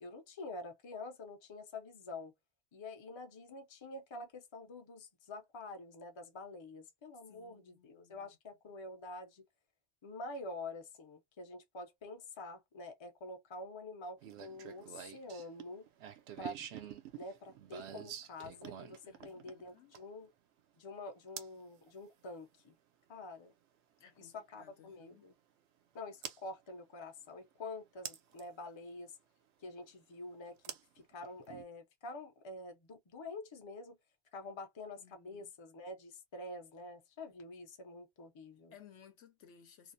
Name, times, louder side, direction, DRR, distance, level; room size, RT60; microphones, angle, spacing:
voice 1, 0.0-2.3 2.7-9.4 10.0-15.9 16.4-16.7 17.2-20.3 20.8-22.8 23.1-23.5 24.2-25.3 25.9-29.2 29.6-34.0 34.3-38.7, left 2 dB, 35° left, 0.5 m, -47 dB
voice 2, 7.3-8.4 19.0-19.9 24.0-25.3 35.0-35.5 38.7-39.9, left 8 dB, 70° left, 0.9 m, -60 dB
sound 1, 14.2-20.2 21.4-21.6 23.5-23.6 26.2-26.4 28.1-28.4 30.6-31.6, right 9 dB, 70° right, 0.8 m, -47 dB
2.4 x 2.0 x 2.5 m
omnidirectional pair, 1.3 m